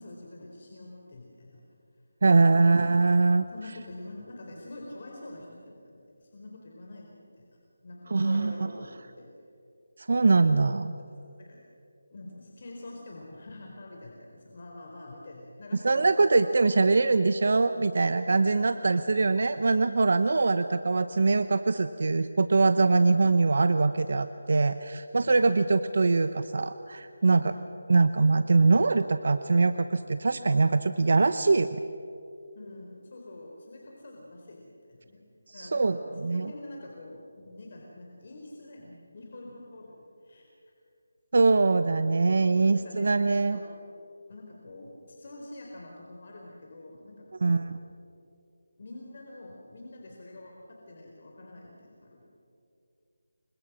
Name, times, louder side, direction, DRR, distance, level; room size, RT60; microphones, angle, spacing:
voice 1, 0.0-1.6 2.4-2.6 3.5-9.3 10.1-10.6 11.4-11.6 12.1-16.2 18.6-19.0 22.9-23.1 25.2-25.5 27.3-27.6 32.5-35.2 35.5-36.0 36.3-40.4 42.7-43.6 44.3-47.6 48.8-52.3, left 2 dB, 50° left, -1 dB, 4.2 m, -46 dB
voice 2, 2.2-3.4 8.1-8.7 10.0-10.8 15.8-27.4 27.9-31.8 35.5-36.5 41.3-43.6 47.4-47.8, right 3 dB, 60° right, 11 dB, 0.9 m, -23 dB
29.5 x 25.5 x 6.2 m, 2.6 s
figure-of-eight pair, 165°, 0 cm